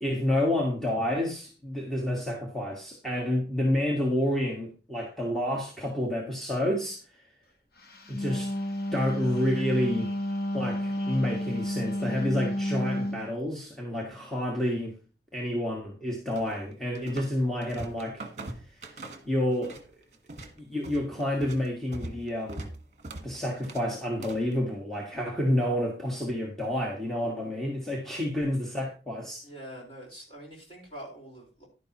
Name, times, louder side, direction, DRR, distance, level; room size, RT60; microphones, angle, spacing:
voice 1, 0.0-7.0 8.1-8.5 8.9-10.1 10.5-14.9 15.3-18.3 19.2-19.8 20.6-22.7 23.2-29.4, left 1 dB, ahead, -3 dB, 1.5 m, -29 dB
Wind instrument woodwind instrument, 7.9-13.3, left 1 dB, 55° left, 1.4 m, -31 dB
sound 1, 16.4-17.4 17.6-19.9 20.1-24.5, right 2 dB, 40° right, 1.5 m, -42 dB
voice 2, 29.4-31.6, equal, 30° left, -2 dB, 4.5 m, -44 dB
11.0 x 10.5 x 3.0 m, 0.35 s
head